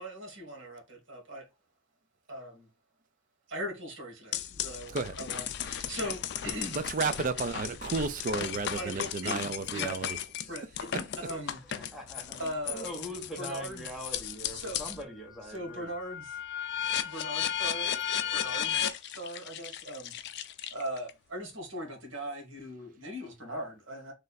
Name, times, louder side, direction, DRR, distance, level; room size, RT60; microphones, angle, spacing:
voice 1, 0.0-1.4 2.3-2.7 3.5-6.8 8.8-10.0 10.5-11.6 12.4-12.9 13.4-13.9 14.6-14.8 15.5-16.4 17.0-17.9 18.3-20.1 20.7-24.1, right 1 dB, 85° right, 1.6 m, -39 dB
sound 1, 4.3-15.0 15.4-21.1, left 9 dB, 60° left, 0.4 m, -35 dB
voice 2, 6.7-10.2 10.9-11.3, right 4 dB, 45° right, 0.4 m, -32 dB
voice 3, 11.5-15.9, equal, ahead, 1.1 m, -42 dB
3.3 x 2.5 x 3.9 m
head